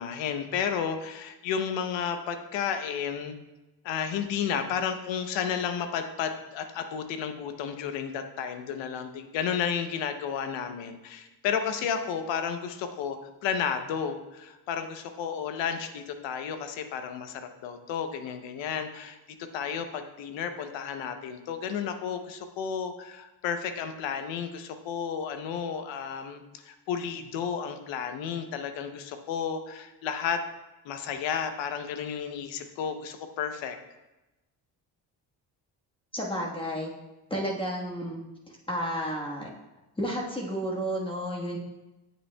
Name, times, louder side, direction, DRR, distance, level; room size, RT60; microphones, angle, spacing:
voice 1, 0.0-3.4 3.8-30.4 30.8-33.8, left 7 dB, 85° left, 8 dB, 0.8 m, -32 dB
voice 2, 36.1-36.9 37.3-38.2 38.7-39.5 40.0-41.6, equal, 10° left, -3 dB, 1.3 m, -31 dB
8.1 x 7.0 x 2.2 m, 1.0 s
cardioid pair, 95°, 43 cm